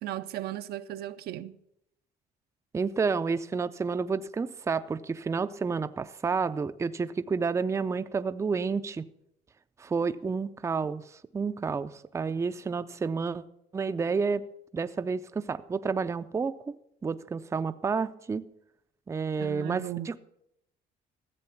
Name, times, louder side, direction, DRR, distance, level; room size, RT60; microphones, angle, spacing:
voice 1, 0.0-1.6 19.4-20.2, right 13 dB, 70° right, 0.6 m, -36 dB
voice 2, 2.7-9.0 9.8-13.4 13.7-14.5 14.7-16.6 17.0-18.5 19.1-20.2, right 5 dB, 15° right, 0.4 m, -30 dB
14.0 x 7.6 x 5.8 m
cardioid pair, 110°, 17 cm